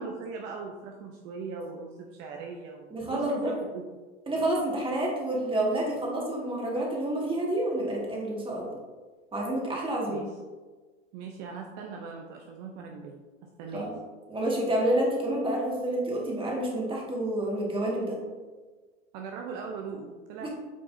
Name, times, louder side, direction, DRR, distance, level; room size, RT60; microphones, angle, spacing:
voice 1, 0.0-3.9 10.1-10.3 11.1-13.9 19.1-20.5, right 5 dB, 55° right, 2 dB, 0.8 m, -40 dB
voice 2, 2.9-3.5 4.3-8.7 9.3-10.3 13.7-13.9 14.3-18.2 20.4-20.5, right 1 dB, 15° right, -3 dB, 1.9 m, -29 dB
8.4 x 4.6 x 2.7 m, 1.3 s
hypercardioid pair, 90°, 33 cm